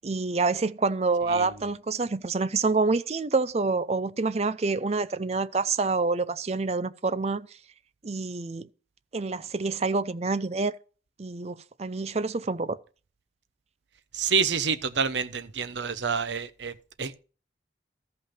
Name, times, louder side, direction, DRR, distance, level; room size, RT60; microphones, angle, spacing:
voice 1, 0.0-7.5 8.0-8.7 9.1-10.7 11.2-12.8, right 3 dB, 35° right, 0.5 m, -27 dB
voice 2, 14.1-17.2, right 5 dB, 90° right, 0.9 m, -28 dB
13.5 x 5.5 x 5.7 m
head